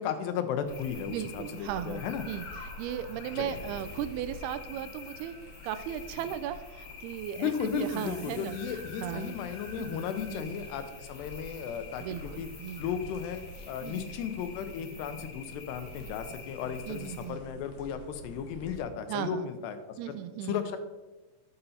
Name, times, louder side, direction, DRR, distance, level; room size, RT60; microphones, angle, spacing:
voice 1, 0.0-2.2 3.4-3.5 7.4-12.5 12.8-20.1 20.4-20.8, left 8 dB, 85° left, 9 dB, 2.9 m, -35 dB
sound 1, 0.6-18.8, left 1 dB, 60° left, 2.1 m, -47 dB
sound 2, 0.7-17.3, left 5 dB, 40° left, 2.3 m, -49 dB
voice 2, 1.1-5.4 5.6-8.6 9.0-9.4 9.8-10.0 10.3-10.7 12.0-12.9 13.8-14.2 16.9-17.4 19.1-19.5 20.0-20.6, right 10 dB, 85° right, 11 dB, 2.4 m, -37 dB
11.5 x 6.7 x 4.2 m, 1.2 s
omnidirectional pair, 4.7 m